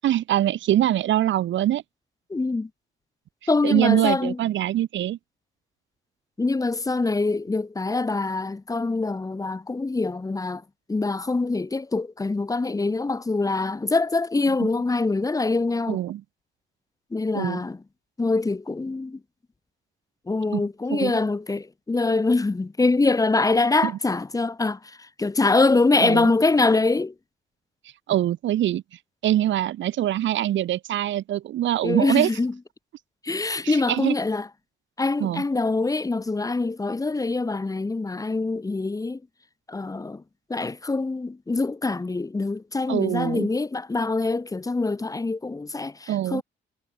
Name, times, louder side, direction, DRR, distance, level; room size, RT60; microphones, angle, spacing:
voice 1, 0.0-1.8 3.6-5.2 15.9-16.2 17.3-17.6 20.5-20.6 20.9-21.1 23.8-23.9 26.0-26.3 28.1-28.8 29.2-32.3 33.6-34.1 35.2-35.4 42.9-43.5 46.1-46.4, right 12 dB, 70° right, 1.1 m, -23 dB
voice 2, 2.3-2.7 3.5-4.4 6.4-10.6 10.9-16.0 17.1-17.8 18.2-19.2 20.3-27.1 31.8-32.5 33.2-34.5 35.0-39.2 39.7-40.2 40.5-46.4, left 3 dB, 15° left, 1.1 m, -24 dB
cardioid pair, 90°, 20 cm